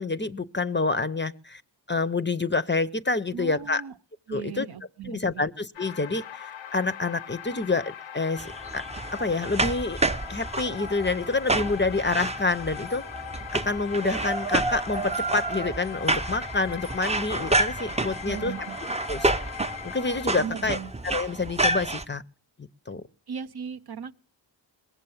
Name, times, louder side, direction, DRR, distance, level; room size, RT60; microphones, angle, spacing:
voice 1, 0.0-1.6 1.9-3.8 4.3-4.7 5.0-8.9 9.1-10.0 10.3-13.0 13.5-18.5 19.1-19.3 19.8-20.8 21.0-22.2 22.6-23.0, left 3 dB, 25° left, 0.6 m, -27 dB
voice 2, 3.3-3.9 4.3-5.5 18.2-18.8 20.4-20.9 23.3-24.1, right 7 dB, 55° right, 0.7 m, -37 dB
sound 1, 5.7-20.3, left 8 dB, 75° left, 0.7 m, -40 dB
sound 2, 8.4-22.0, right 2 dB, 15° right, 0.6 m, -29 dB
20.5 x 7.4 x 7.0 m
wide cardioid pair, 75°, 46 cm